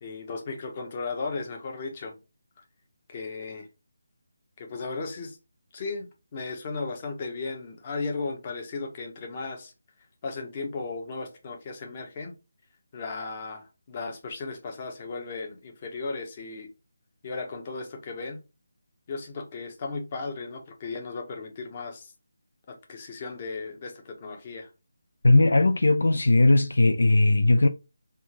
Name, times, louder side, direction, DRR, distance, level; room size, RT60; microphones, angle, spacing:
voice 1, 0.0-2.2 3.1-3.7 4.6-5.4 5.7-9.7 10.2-12.3 12.9-16.7 17.2-18.4 19.1-22.1 22.7-24.7, left 3 dB, 30° left, 0.9 m, -35 dB
voice 2, 25.2-27.7, left 2 dB, 75° left, 0.3 m, -19 dB
3.5 x 2.5 x 2.9 m
figure-of-eight pair, 165°, 0 cm